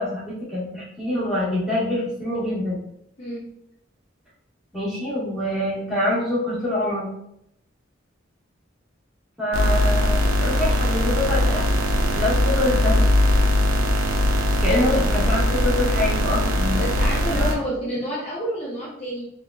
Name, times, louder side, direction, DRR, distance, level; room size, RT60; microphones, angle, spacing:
voice 1, 0.0-2.8 4.7-7.1 9.4-11.6 12.1-13.1 14.6-16.8 17.1-17.4, left 1 dB, ahead, -9 dB, 1.0 m, -25 dB
voice 2, 3.2-3.5 14.8-15.0 16.8-19.3, right 1 dB, 30° left, -5 dB, 0.6 m, -29 dB
sound 1, 9.5-17.5, left 1 dB, 90° right, 0.5 m, -20 dB
3.3 x 2.3 x 2.3 m, 0.75 s
head